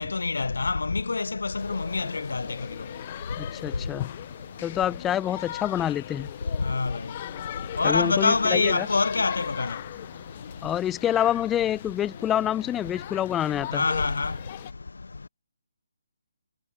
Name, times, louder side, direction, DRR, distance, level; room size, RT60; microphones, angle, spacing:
voice 1, 0.0-2.6 6.6-7.0 7.8-9.8 13.7-14.3, left 3 dB, 65° left, 0.8 m, -25 dB
sound 1, 1.6-14.7, left 13 dB, 30° left, 1.1 m, -40 dB
voice 2, 3.4-4.1 4.6-6.3 7.8-8.9 10.6-13.8, left 11 dB, 10° left, 1.0 m, -27 dB
figure-of-eight pair, 145°, 0 cm